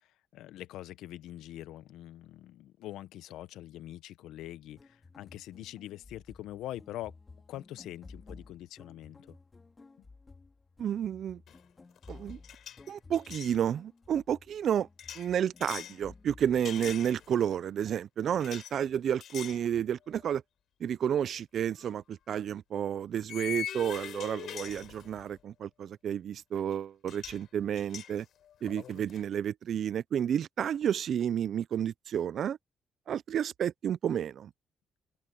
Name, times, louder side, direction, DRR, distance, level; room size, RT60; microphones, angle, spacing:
voice 1, 0.3-7.1 7.5-9.4, left 14 dB, 85° left, 0.9 m, -44 dB
sound 1, 4.7-17.0, left 3 dB, 30° left, 2.1 m, -54 dB
voice 2, 10.8-11.4 12.1-12.4 12.9-14.9 15.2-20.4 20.8-28.3 28.6-32.6 33.1-34.5, right 9 dB, 65° right, 0.4 m, -31 dB
sound 2, 11.5-11.7 12.0-13.6 15.0-16.0 16.7-17.5 18.4-18.7 19.2-19.7 20.1-20.3 21.8-21.9 23.3-25.4 26.7-26.8 27.1-27.4 27.8-29.2, left 10 dB, 70° left, 5.2 m, -42 dB
open air
cardioid pair, 90°, 0 cm